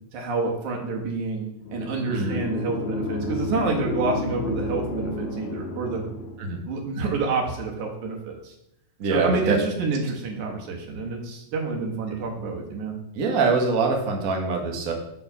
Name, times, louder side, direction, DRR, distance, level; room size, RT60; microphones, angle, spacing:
voice 1, 0.1-6.1 6.7-8.5 9.1-12.9, right 3 dB, 80° right, 0 dB, 2.8 m, -28 dB
sound 1, 1.6-6.6, left 2 dB, 65° left, 2.0 m, -31 dB
voice 2, 9.0-9.6 13.1-14.9, right 4 dB, 60° right, 1 dB, 0.9 m, -24 dB
7.6 x 4.6 x 5.8 m, 0.82 s
omnidirectional pair, 3.4 m